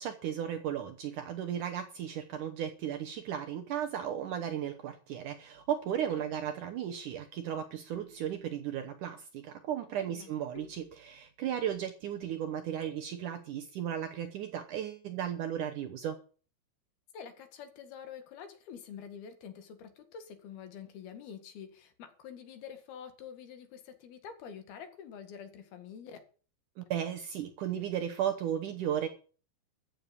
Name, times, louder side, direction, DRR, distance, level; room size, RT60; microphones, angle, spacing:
voice 1, 0.0-16.2 26.8-29.1, right 9 dB, 70° right, 7 dB, 2.1 m, -35 dB
sound 1, 5.5-6.1 7.9-8.9 10.5-11.5 12.8-13.5, left 3 dB, 45° left, 3.7 m, -56 dB
voice 2, 10.0-10.3 17.1-26.2, left 7 dB, 70° left, 8 dB, 3.8 m, -47 dB
14.5 x 7.3 x 9.9 m, 0.40 s
omnidirectional pair, 4.7 m